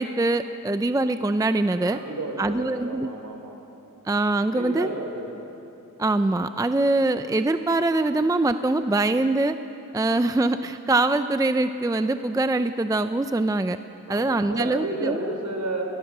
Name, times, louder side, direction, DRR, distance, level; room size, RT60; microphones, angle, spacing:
voice 1, 0.0-2.0 2.4-3.1 4.0-4.9 6.0-9.6 9.9-13.8 14.1-15.2, right 2 dB, 10° right, 10 dB, 0.5 m, -23 dB
voice 2, 1.8-3.6 4.5-5.3 14.0-15.8, right 2 dB, 60° right, 2 dB, 4.4 m, -32 dB
21.5 x 21.0 x 6.7 m, 2.9 s
wide cardioid pair, 115°, 33 cm